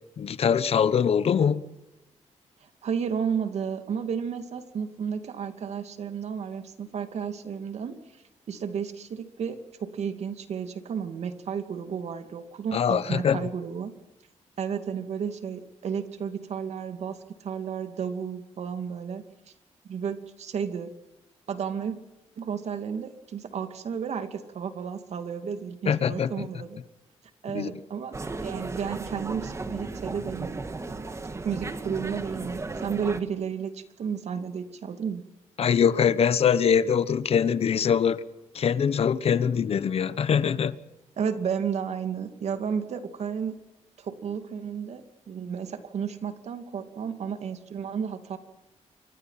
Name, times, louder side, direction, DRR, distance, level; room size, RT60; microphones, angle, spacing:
voice 1, 0.2-1.6 12.7-13.4 25.8-26.5 27.5-27.7 35.6-38.2 38.5-40.8, left 7 dB, 55° left, 1.2 m, -23 dB
voice 2, 2.6-8.0 8.5-14.0 14.6-19.2 19.9-20.9 21.5-22.0 22.4-26.8 27.4-30.6 31.4-35.2 41.2-43.6 44.0-48.4, right 7 dB, 65° right, 2.6 m, -32 dB
sound 1, 28.1-33.2, right 3 dB, 25° right, 1.9 m, -35 dB
29.0 x 23.5 x 5.8 m
wide cardioid pair, 135°, 12 cm